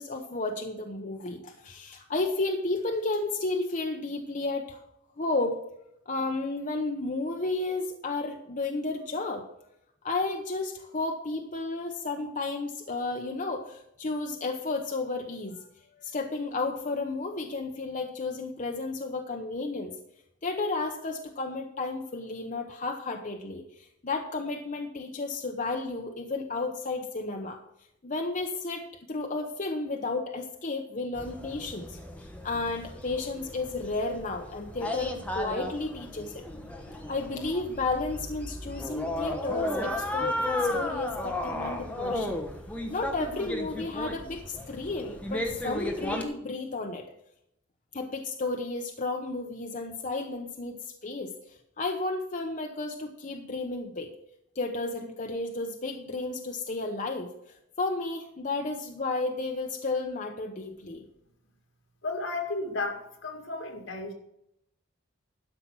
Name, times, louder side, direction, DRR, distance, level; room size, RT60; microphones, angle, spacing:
voice 1, 0.0-4.8 5.2-5.6 6.1-9.4 10.0-15.6 16.0-20.0 20.4-27.6 28.0-32.0 32.4-36.4 37.1-42.4 42.9-47.1 47.9-51.3 51.8-54.1 54.5-57.3 57.8-61.0, left 3 dB, 40° left, 4 dB, 0.9 m, -32 dB
sound 1, 31.1-46.2, left 1 dB, 5° left, 1.2 m, -34 dB
voice 2, 62.0-64.1, left 3 dB, 75° left, 3 dB, 2.3 m, -33 dB
12.5 x 5.8 x 6.1 m, 0.80 s
head